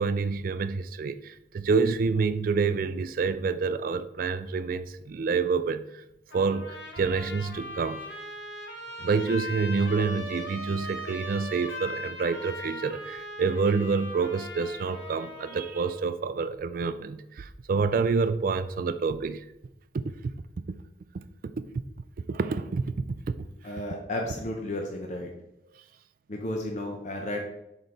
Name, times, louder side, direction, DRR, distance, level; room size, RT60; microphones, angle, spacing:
voice 1, 0.0-6.0 6.3-8.0 9.0-19.4 19.9-20.0 22.3-23.4, right 4 dB, 50° right, 0.3 m, -28 dB
Trumpet, 6.3-16.0, left 1 dB, 80° left, 1.4 m, -39 dB
voice 2, 23.6-25.3 26.3-27.4, left 1 dB, 40° left, 0.7 m, -33 dB
6.4 x 4.0 x 3.8 m
head